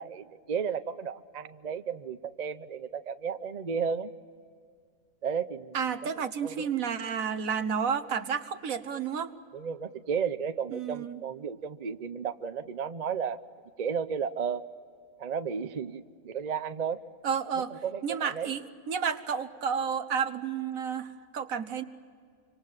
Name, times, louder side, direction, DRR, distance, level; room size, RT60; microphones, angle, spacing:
voice 1, 0.0-4.1 5.2-6.1 6.4-6.7 9.5-13.4 13.8-14.6 15.2-17.0 17.7-18.5, right 6 dB, 40° right, 11 dB, 0.7 m, -33 dB
voice 2, 5.7-9.3 10.7-11.2 17.2-17.7 18.0-21.8, right 7 dB, 70° right, 11 dB, 1.5 m, -31 dB
26.0 x 26.0 x 7.4 m, 2.1 s
omnidirectional pair, 1.5 m